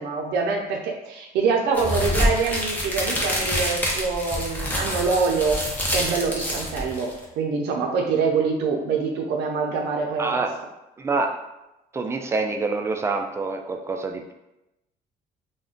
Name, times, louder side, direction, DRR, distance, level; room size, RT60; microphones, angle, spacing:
voice 1, 0.0-5.6 5.9-10.4, right 5 dB, 80° right, 2 dB, 0.5 m, -25 dB
sound 1, 1.7-7.2, equal, 10° left, 0.7 m, -26 dB
voice 2, 10.2-10.5 11.0-11.4 11.9-14.3, right 3 dB, 15° right, 4 dB, 0.3 m, -26 dB
2.4 x 2.1 x 3.6 m, 0.92 s
cardioid pair, 110°, 17 cm